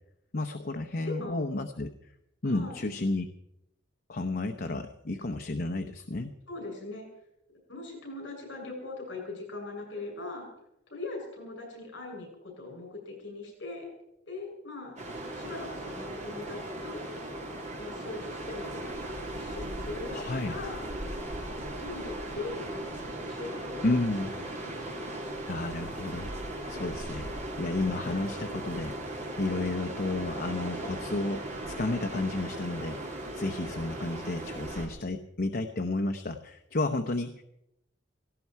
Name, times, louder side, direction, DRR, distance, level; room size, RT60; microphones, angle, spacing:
voice 1, 0.3-1.9 2.4-3.2 4.1-6.3 20.1-20.5 23.8-24.3 25.5-26.3 26.7-27.3 27.6-37.4, left 2 dB, 50° left, 7 dB, 0.9 m, -32 dB
voice 2, 1.0-1.4 2.4-2.8 6.5-7.1 7.7-10.5 10.9-13.9 14.3-15.0 15.3-17.3 17.8-18.8 19.3-20.9 21.6-24.0 24.4-25.1, left 3 dB, 70° left, 0 dB, 7.4 m, -41 dB
sound 1, 15.0-34.9, right 1 dB, 40° right, 3.0 m, -38 dB
17.5 x 17.0 x 4.7 m, 0.81 s
head